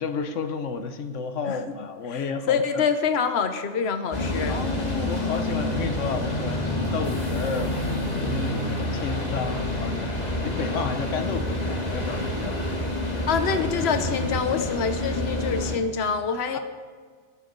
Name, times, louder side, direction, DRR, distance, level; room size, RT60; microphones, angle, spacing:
voice 1, 0.0-2.8 4.5-12.6 16.5-16.6, left 5 dB, 90° left, 8 dB, 1.3 m, -32 dB
voice 2, 2.1-4.6 13.3-16.6, left 6 dB, 60° left, 8 dB, 1.2 m, -26 dB
sound 1, 4.1-15.8, left 1 dB, 35° left, 2.2 m, -28 dB
20.0 x 9.0 x 5.4 m, 1.5 s
omnidirectional pair, 1.2 m